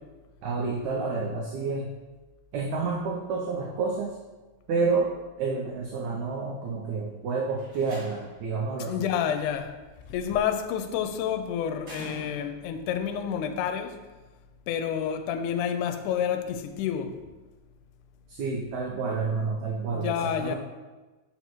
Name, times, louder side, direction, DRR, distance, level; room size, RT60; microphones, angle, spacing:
voice 1, 0.4-1.9 2.5-4.2 4.7-5.1 5.4-9.1 18.3-20.6, right 4 dB, 75° right, 1.9 m, -29 dB
Slam, 7.5-8.5 10.0-10.5 11.8-12.8, equal, 30° right, 2.0 m, -45 dB
voice 2, 8.8-9.7 10.1-14.0 14.7-17.1 19.9-20.6, left 8 dB, 85° left, 2.0 m, -29 dB
6.0 x 5.2 x 3.0 m
omnidirectional pair, 3.5 m